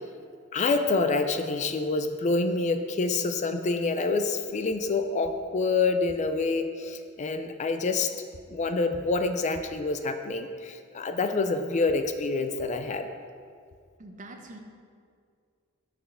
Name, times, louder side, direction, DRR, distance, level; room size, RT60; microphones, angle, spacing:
voice 1, 0.5-8.1 8.5-13.1, left 3 dB, 35° left, 8 dB, 0.4 m, -27 dB
voice 2, 14.0-14.6, right 2 dB, 40° right, 4 dB, 0.8 m, -44 dB
6.8 x 5.3 x 5.5 m, 2.1 s
head